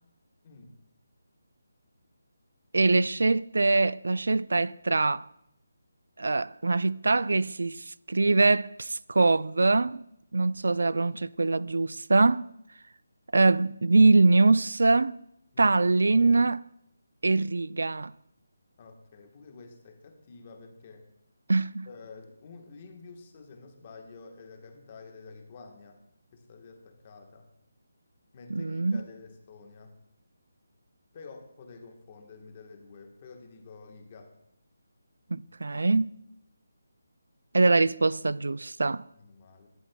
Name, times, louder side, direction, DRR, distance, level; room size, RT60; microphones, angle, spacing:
voice 1, 0.4-0.8 11.5-11.7 15.5-15.8 18.8-21.0 21.9-26.0 26.3-27.5 28.3-29.9 31.1-34.3 39.2-39.7, left 4 dB, 25° left, 1.3 m, -49 dB
voice 2, 2.7-5.2 6.2-10.0 10.3-12.5 13.3-15.2 15.6-16.6 17.2-18.1 21.5-21.9 28.5-29.0 35.3-36.2 37.5-39.0, right 3 dB, 80° right, 0.3 m, -23 dB
17.5 x 11.0 x 2.3 m
hypercardioid pair, 175°, 0 cm